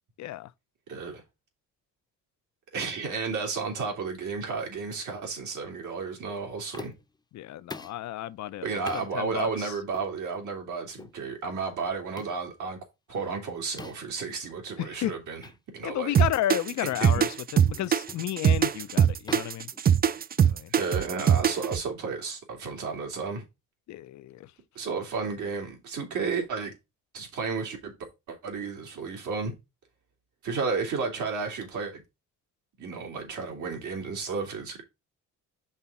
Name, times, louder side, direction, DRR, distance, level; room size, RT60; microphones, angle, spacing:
voice 1, 0.2-0.5 7.3-9.7 14.8-15.1 15.8-19.7 20.4-20.7 23.9-24.5, left 13 dB, 65° left, 0.5 m, -33 dB
voice 2, 0.9-1.2 2.7-6.9 8.6-12.8 13.1-15.4 15.7-16.1 16.8-17.2 17.7-17.9 20.7-23.4 24.7-26.7 27.1-27.9 28.3-29.5 30.4-32.0 32.8-34.8, right 5 dB, 75° right, 2.7 m, -32 dB
sound 1, 6.7-7.2 7.7-8.0 8.9-9.1 9.9-10.1 11.0-11.2 12.2-12.4 13.8-14.2 15.4-15.6 16.0-16.2 16.9-17.1 18.1-18.3 19.3-20.5, left 3 dB, 15° left, 0.6 m, -43 dB
sound 2, 16.1-21.8, right 8 dB, 30° right, 0.4 m, -21 dB
5.6 x 3.7 x 5.7 m
cardioid pair, 90°, 30 cm